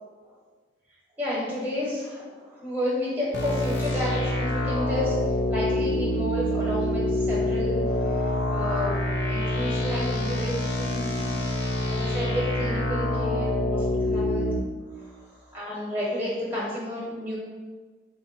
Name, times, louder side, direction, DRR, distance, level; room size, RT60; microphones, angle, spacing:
voice 1, 1.2-5.2 5.5-9.0 9.3-11.0 11.9-14.5 14.9-17.4, left 1 dB, 10° right, -7 dB, 1.1 m, -31 dB
sound 1, 3.3-14.6, left 1 dB, 65° left, 0.6 m, -26 dB
4.5 x 2.1 x 4.2 m, 1.4 s
head